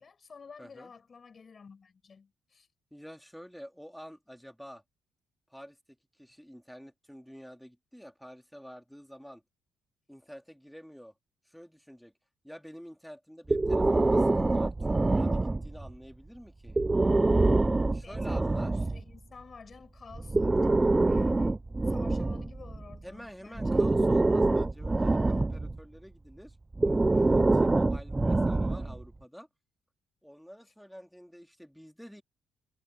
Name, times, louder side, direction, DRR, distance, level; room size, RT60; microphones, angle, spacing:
voice 1, 0.0-2.7 18.0-23.9 28.3-28.6, left 5 dB, 40° left, 5.2 m, -51 dB
voice 2, 0.6-0.9 2.9-4.8 5.5-5.8 6.1-9.4 10.1-11.1 11.4-12.1 12.4-16.8 17.9-18.7 23.0-29.5 30.2-32.2, equal, ahead, 2.8 m, -48 dB
Breathing, 13.5-15.9 16.7-19.0 20.1-23.0 23.6-25.8 26.7-29.0, right 2 dB, 20° right, 0.3 m, -25 dB
cardioid pair, 90°, 0 cm